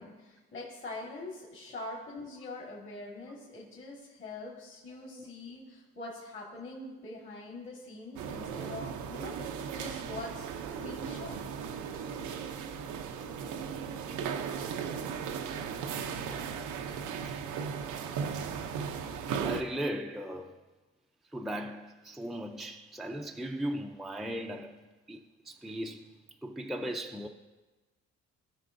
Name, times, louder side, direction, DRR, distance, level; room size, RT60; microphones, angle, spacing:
voice 1, 0.0-11.5, left 2 dB, 40° left, 1.8 m, -44 dB
sound 1, 8.2-19.6, right 7 dB, 80° right, 0.7 m, -36 dB
voice 2, 19.4-20.5 21.3-24.8 25.1-25.2 25.5-26.1 26.4-27.3, equal, ahead, 0.5 m, -37 dB
16.5 x 6.0 x 2.6 m
cardioid pair, 90°, 30 cm